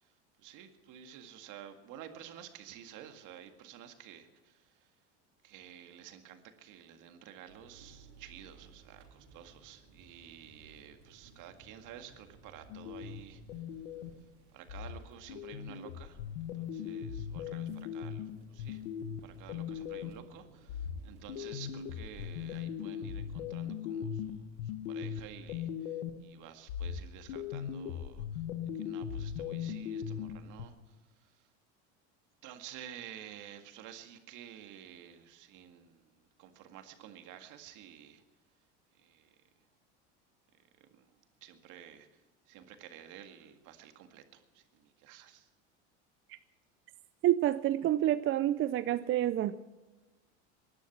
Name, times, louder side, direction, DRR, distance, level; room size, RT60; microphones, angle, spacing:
voice 1, 0.4-4.9 5.4-13.4 14.5-16.2 16.5-18.8 19.2-28.4 28.7-31.5 32.4-38.2 39.0-39.3 40.8-41.1 41.4-45.5, right 10 dB, 60° right, 2.0 m, -52 dB
sound 1, 7.5-22.6, right 4 dB, 90° right, 3.3 m, -60 dB
sound 2, 12.7-14.3 14.7-20.3 20.7-26.3 26.7-30.7, left 8 dB, 80° left, 1.2 m, -39 dB
voice 2, 47.2-49.5, right 13 dB, 35° right, 0.5 m, -28 dB
20.5 x 11.5 x 6.0 m
supercardioid pair, 100°, 36 cm